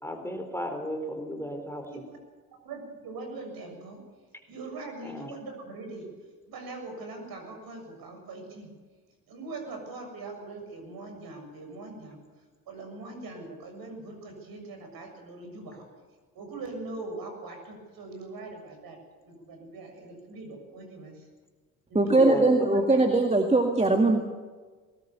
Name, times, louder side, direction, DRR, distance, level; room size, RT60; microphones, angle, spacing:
voice 1, 0.0-1.9 5.0-5.3 22.2-22.5, equal, 5° left, 5 dB, 4.2 m, -33 dB
voice 2, 2.6-4.0 4.5-6.1 6.5-8.7 9.3-12.2 12.7-15.9 16.3-21.2 21.9-22.2 22.9-23.1, right 3 dB, 55° right, 4 dB, 7.0 m, -41 dB
voice 3, 21.9-24.2, right 2 dB, 15° right, 4 dB, 2.0 m, -21 dB
20.5 x 19.0 x 7.1 m, 1.4 s
hypercardioid pair, 60°, 43 cm